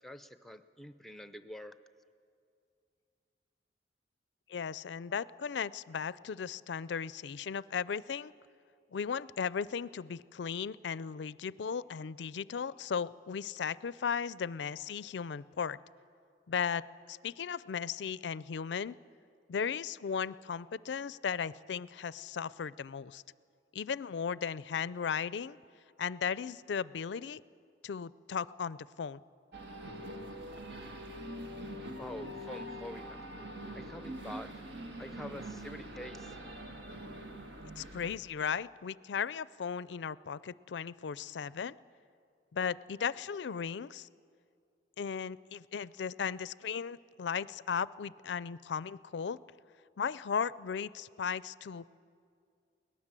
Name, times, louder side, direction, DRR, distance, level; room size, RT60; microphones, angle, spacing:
voice 1, 0.0-1.8 32.0-33.2 33.7-34.5 35.0-36.3, left 1 dB, ahead, 11 dB, 0.7 m, -46 dB
voice 2, 4.5-8.3 8.9-15.8 16.5-19.0 19.5-23.2 23.7-25.6 26.0-27.4 27.8-29.2 37.8-41.8 42.5-44.1 45.0-49.4 50.0-51.9, left 6 dB, 75° left, 19 dB, 0.4 m, -36 dB
sound 1, 29.5-38.2, right 1 dB, 75° right, 1.8 m, -44 dB
22.5 x 18.5 x 7.5 m, 2.3 s
head